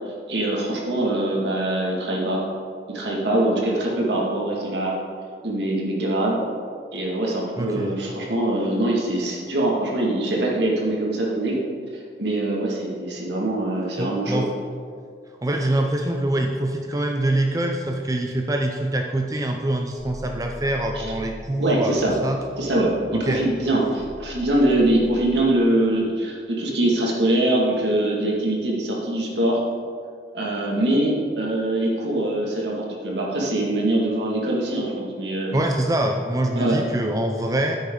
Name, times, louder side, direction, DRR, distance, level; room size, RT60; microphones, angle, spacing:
voice 1, 0.3-2.4 2.9-4.9 5.4-6.4 6.9-11.6 11.9-14.4 20.9-21.1 21.6-22.1 22.6-29.6 30.3-35.5 36.5-36.8, right 1 dB, 70° right, -3 dB, 2.1 m, -23 dB
voice 2, 7.6-7.9 14.0-14.5 15.4-22.4 23.1-23.4 35.5-37.8, right 1 dB, 20° right, 3 dB, 0.5 m, -24 dB
sound 1, 20.0-21.4 22.0-25.4, equal, 25° left, 1.8 m, -41 dB
9.4 x 9.2 x 3.9 m, 2.1 s
head